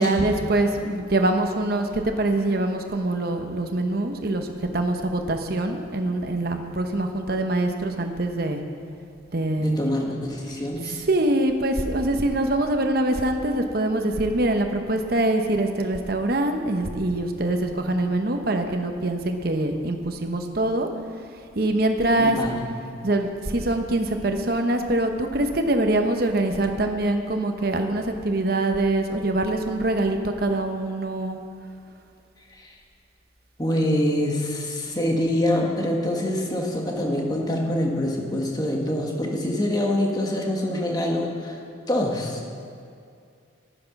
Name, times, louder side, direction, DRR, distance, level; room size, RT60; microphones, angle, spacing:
voice 1, 0.0-4.5 4.7-8.6 9.3-9.8 11.1-20.9 21.5-22.4 23.0-31.4, right 1 dB, 50° right, 5 dB, 0.9 m, -24 dB
voice 2, 9.6-11.1 22.2-22.6 32.5-32.7 33.6-41.6 41.9-42.4, left 1 dB, 20° left, 0 dB, 1.3 m, -25 dB
11.0 x 9.4 x 5.9 m, 2.4 s
head